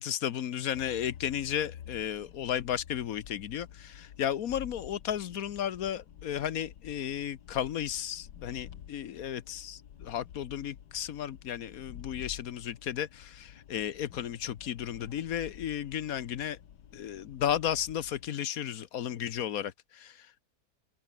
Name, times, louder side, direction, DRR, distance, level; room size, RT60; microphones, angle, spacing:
voice 1, 0.0-16.6 16.9-20.4, left 10 dB, 60° left, 1.2 m, -34 dB
sound 1, 0.7-18.3, left 9 dB, 85° left, 1.9 m, -50 dB
omnidirectional pair, 1.9 m